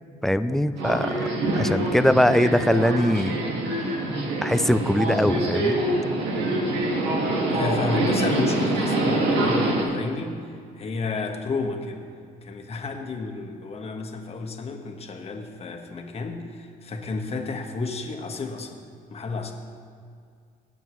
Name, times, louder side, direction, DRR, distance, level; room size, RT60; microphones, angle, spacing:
voice 1, 0.2-1.3 1.5-3.4 4.4-5.8, left 1 dB, ahead, 12 dB, 0.4 m, -21 dB
Subway metro underground, 0.8-9.8, right 2 dB, 85° right, 2.0 m, -25 dB
voice 2, 7.5-12.1 12.4-18.8 19.1-19.5, left 3 dB, 35° left, 3 dB, 1.3 m, -32 dB
18.5 x 9.0 x 3.1 m, 2.2 s
cardioid pair, 110°, 17 cm